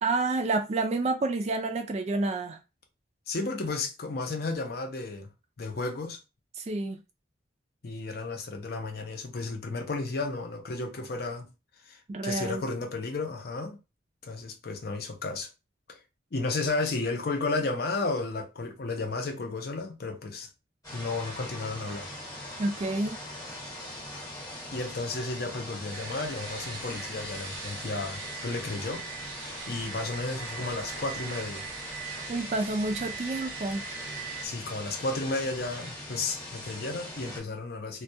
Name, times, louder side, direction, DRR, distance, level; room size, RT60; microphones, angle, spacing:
voice 1, 0.0-2.6 6.6-7.0 12.1-12.6 22.6-23.2 32.3-33.9, right 2 dB, 35° right, 0.3 m, -29 dB
voice 2, 3.3-5.3 5.6-6.2 7.8-11.5 11.9-13.8 14.2-15.5 15.9-16.0 16.3-20.5 20.9-22.1 24.7-29.0 29.3-31.7 34.4-38.0, left 3 dB, 55° left, 0.5 m, -33 dB
sound 1, 20.8-37.4, left 1 dB, 20° left, 0.9 m, -41 dB
sound 2, 25.9-34.5, right 5 dB, 85° right, 0.7 m, -41 dB
2.2 x 2.2 x 2.7 m
head